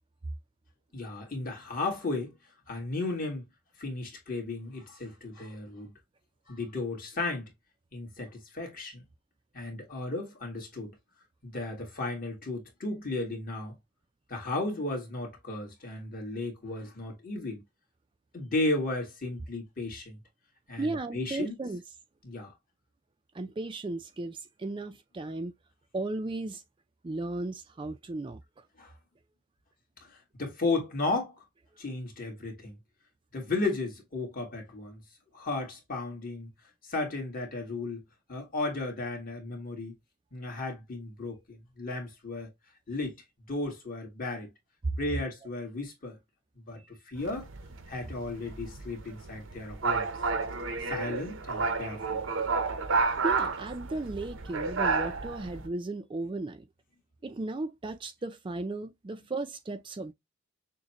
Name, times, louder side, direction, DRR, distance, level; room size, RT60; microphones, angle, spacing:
voice 1, 0.9-2.3 2.7-3.5 3.8-5.9 6.5-7.5 7.9-9.0 9.5-10.9 11.4-13.8 14.3-17.6 18.3-20.2 20.7-21.5 22.2-22.5 28.8-28.9 30.0-31.3 31.8-32.8 33.3-35.0 35.3-36.5 36.8-38.0 38.3-39.9 40.3-42.5 42.9-44.5 45.0-46.2 46.5-47.5 47.9-50.1 50.9-52.2, left 2 dB, 45° left, 1.7 m, -34 dB
voice 2, 20.8-21.8 23.3-25.5 25.9-26.6 27.0-28.4 44.8-44.9 53.2-56.6 57.2-60.1, right 2 dB, 25° right, 0.4 m, -35 dB
sound 1, 47.2-55.7, right 4 dB, 85° right, 0.7 m, -31 dB
6.4 x 2.2 x 2.8 m
head